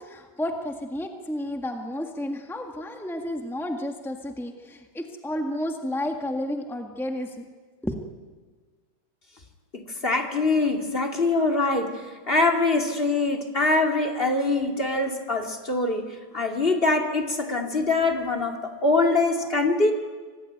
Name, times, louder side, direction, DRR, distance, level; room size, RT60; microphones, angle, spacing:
voice 1, 0.0-7.4 7.8-8.0, left 1 dB, 5° left, 4 dB, 0.4 m, -31 dB
voice 2, 9.7-16.1 16.3-19.9, left 3 dB, 20° left, 3 dB, 2.3 m, -23 dB
25.5 x 19.0 x 9.3 m, 1.5 s
omnidirectional pair, 3.5 m